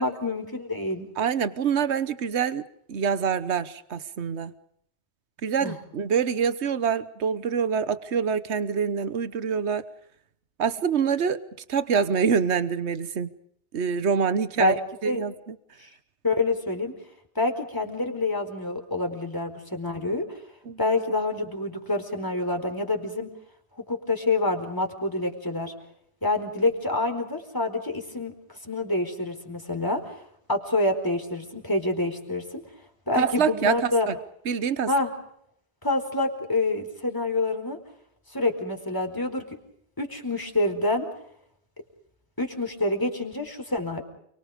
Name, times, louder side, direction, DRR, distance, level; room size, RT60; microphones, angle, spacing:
voice 1, 0.0-1.1 5.6-5.8 14.6-14.7 15.0-15.2 16.2-16.9 17.3-20.2 20.8-23.3 23.9-25.7 26.2-28.3 28.6-30.1 30.5-32.6 33.1-34.1 34.9-35.1 35.8-37.8 38.3-39.4 40.0-41.1 42.4-44.0, left 2 dB, 20° left, 4 dB, 4.5 m, -27 dB
voice 2, 1.2-4.5 5.4-9.8 10.6-11.4 11.7-13.3 13.7-14.7 15.0-15.3 20.7-20.8 33.1-34.1 34.4-34.9, right 6 dB, 75° right, 13 dB, 1.4 m, -25 dB
29.5 x 23.5 x 5.2 m, 0.70 s
omnidirectional pair, 1.1 m